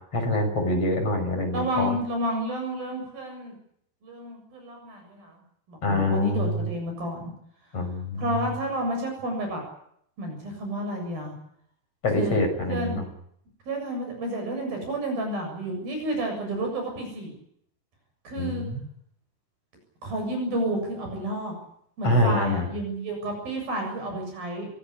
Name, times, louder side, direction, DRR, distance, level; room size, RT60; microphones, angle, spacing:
voice 1, 0.1-1.9 5.8-6.6 7.7-8.2 12.0-13.0 18.4-18.8 22.0-22.7, left 1 dB, 35° left, 4 dB, 6.9 m, -25 dB
voice 2, 1.5-3.5 4.0-5.4 5.7-7.3 8.2-9.6 10.2-11.3 12.1-12.4 12.7-13.0 13.7-17.3 18.2-18.7 20.0-21.5 22.0-24.7, right 1 dB, 60° right, 3 dB, 9.2 m, -30 dB
25.5 x 18.0 x 10.0 m, 0.70 s
omnidirectional pair, 4.8 m